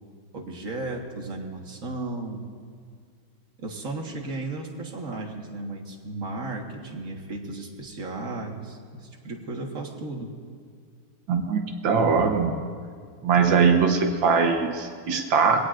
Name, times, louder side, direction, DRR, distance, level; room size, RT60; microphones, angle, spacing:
voice 1, 0.3-2.5 3.6-10.3, right 2 dB, 45° right, 1 dB, 1.9 m, -35 dB
voice 2, 11.3-12.5 13.2-15.6, right 5 dB, 80° right, 3 dB, 1.9 m, -21 dB
23.5 x 17.5 x 2.5 m, 2.1 s
omnidirectional pair, 2.1 m